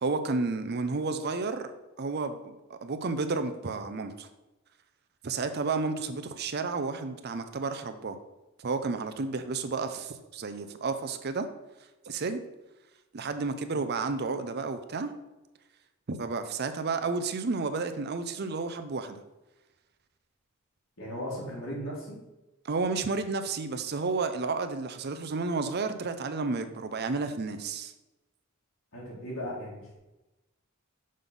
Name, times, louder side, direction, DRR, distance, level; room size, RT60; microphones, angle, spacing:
voice 1, 0.0-1.7 2.0-4.3 5.2-8.2 8.6-11.5 12.0-12.4 13.1-15.1 16.1-19.2 22.6-27.9, right 4 dB, 50° right, 9 dB, 0.6 m, -31 dB
voice 2, 21.0-22.2 28.9-30.0, equal, 80° left, -5 dB, 2.2 m, -37 dB
6.4 x 3.9 x 5.3 m, 1.0 s
head